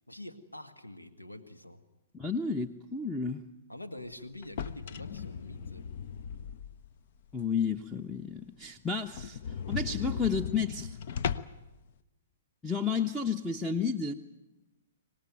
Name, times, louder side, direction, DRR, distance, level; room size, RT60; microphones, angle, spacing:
voice 1, 0.1-1.8 3.7-5.9, left 1 dB, 90° left, 8 dB, 1.5 m, -46 dB
voice 2, 2.1-3.4 7.3-9.4 9.7-11.0 12.6-14.1, left 5 dB, 5° left, 8 dB, 0.9 m, -31 dB
sound 1, 4.4-7.0 7.4-7.5 7.9-8.0 8.3-8.4 8.6-8.7 9.1-11.7, left 7 dB, 50° left, 0.8 m, -37 dB
25.0 x 19.0 x 9.3 m, 1.0 s
figure-of-eight pair, 115°, 0 cm